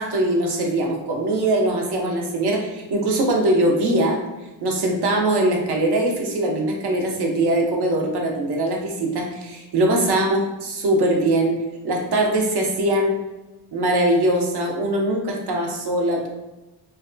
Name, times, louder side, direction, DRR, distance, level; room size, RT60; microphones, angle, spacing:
voice 1, 0.0-4.2 4.6-11.5 11.8-13.2 13.7-16.3, right 1 dB, 55° right, 0 dB, 0.8 m, -21 dB
2.7 x 2.2 x 2.5 m, 1.1 s
cardioid pair, 85°, 48 cm